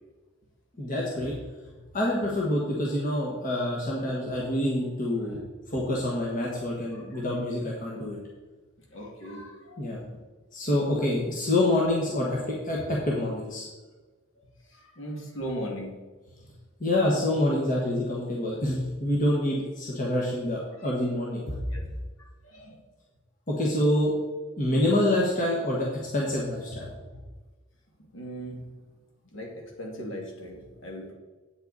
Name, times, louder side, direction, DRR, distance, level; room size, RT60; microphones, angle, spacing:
voice 1, 0.8-1.3 1.9-5.4 5.7-8.2 9.8-10.0 10.5-13.6 16.8-21.8 23.5-24.1 24.6-25.9 26.1-26.9, left 1 dB, 40° left, -3 dB, 1.5 m, -27 dB
voice 2, 6.9-7.2 8.9-9.9 14.7-15.9 21.7-21.8 22.4-22.8 28.1-28.6 29.3-31.1, equal, 65° left, -1 dB, 2.3 m, -38 dB
8.5 x 8.0 x 4.1 m, 1.3 s
head